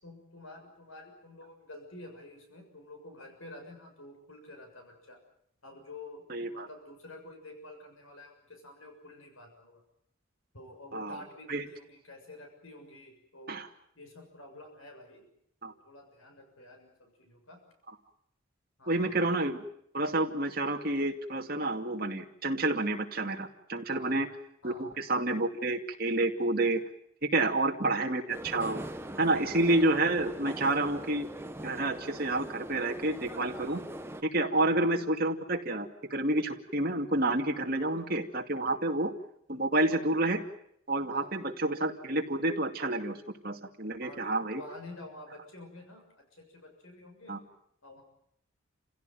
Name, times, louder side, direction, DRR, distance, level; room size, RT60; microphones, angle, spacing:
voice 1, 0.0-5.2 5.6-9.8 10.5-13.6 13.9-15.3 15.6-17.6 18.8-19.2 23.9-24.2 24.6-24.9 27.4-27.7 34.5-34.7 41.1-41.3 44.0-47.4 47.8-48.0, left 2 dB, 80° left, 4 dB, 6.8 m, -49 dB
voice 2, 6.3-6.7 10.9-11.2 11.5-11.7 13.5-13.7 15.6-15.7 18.9-19.6 19.9-24.3 24.6-26.8 27.2-28.8 29.2-31.3 31.6-33.8 34.2-39.1 39.5-40.4 40.9-43.2 43.4-44.6 47.3-47.4, right 2 dB, 45° right, 3 dB, 2.5 m, -29 dB
sound 1, 28.3-34.2, right 1 dB, 10° right, 1.0 m, -41 dB
29.0 x 16.5 x 9.4 m, 0.71 s
head